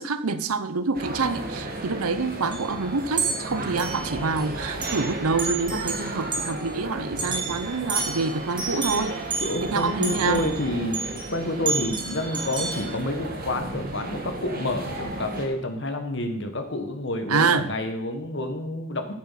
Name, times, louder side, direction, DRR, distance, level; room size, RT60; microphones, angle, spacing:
voice 1, 0.0-9.2 9.7-10.5 17.3-17.7, right 4 dB, 85° right, 12 dB, 0.8 m, -26 dB
sound 1, 0.9-15.5, right 1 dB, 40° right, 1.7 m, -34 dB
sound 2, 1.3-1.4 2.5-2.7 3.2-4.4 4.8-5.1 5.4-6.6 7.2-11.3 11.6-12.8, right 4 dB, 20° right, 2.1 m, -31 dB
voice 2, 9.4-11.0 11.3-19.1, left 1 dB, 55° left, 6 dB, 1.5 m, -29 dB
13.5 x 7.4 x 5.8 m, 0.76 s
head